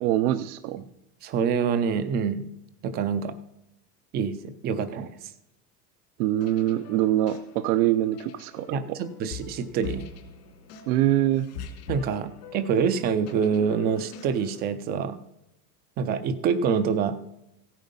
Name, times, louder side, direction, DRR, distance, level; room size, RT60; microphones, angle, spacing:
voice 1, 0.0-0.8 6.2-9.0 10.9-11.5, right 13 dB, 70° right, 11 dB, 0.8 m, -24 dB
voice 2, 1.2-2.5 2.8-3.3 4.1-5.3 8.7-10.0 11.9-15.2 16.0-17.2, right 6 dB, 20° right, 12 dB, 0.5 m, -26 dB
sound 1, 6.3-14.7, left 6 dB, 80° left, 3.1 m, -43 dB
15.5 x 9.3 x 5.3 m, 0.85 s
supercardioid pair, 165°, 46 cm